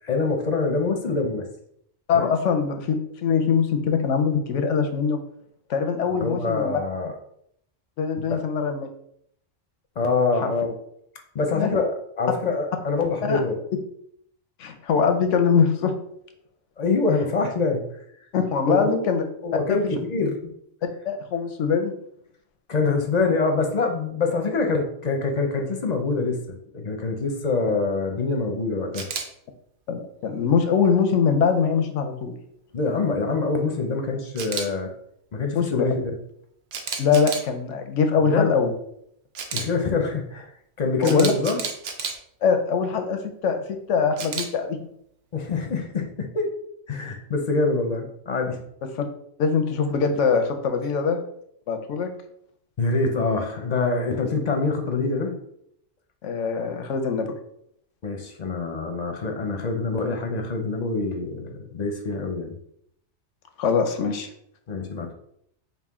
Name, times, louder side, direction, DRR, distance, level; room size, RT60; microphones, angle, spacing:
voice 1, 0.0-1.5 2.1-2.3 6.1-7.1 8.3-8.4 10.0-10.7 11.3-13.6 16.8-17.8 18.7-19.0 19.4-20.5 22.7-26.4 26.7-29.1 32.7-34.9 35.3-36.0 38.2-38.5 39.5-40.5 40.8-41.6 45.3-46.5 46.9-48.6 52.8-55.4 58.0-62.5 64.7-65.1, left 3 dB, 45° left, 4 dB, 0.6 m, -25 dB
voice 2, 2.1-3.0 3.2-5.2 5.7-6.8 8.0-8.9 10.4-10.5 11.5-11.7 13.3-13.4 14.6-15.9 18.3-19.2 19.7-19.9 21.1-21.9 29.9-32.4 35.5-35.9 37.0-38.7 41.0-41.3 42.4-44.8 49.4-51.2 51.7-52.1 56.2-57.3 63.6-64.3, left 6 dB, 90° left, 6 dB, 1.0 m, -22 dB
Camera, 28.9-29.2 34.4-34.7 36.7-37.5 39.3-39.6 41.0-42.1 44.2-44.5, right 5 dB, 65° right, 0.8 m, -30 dB
5.4 x 2.4 x 3.6 m, 0.71 s
omnidirectional pair, 1.2 m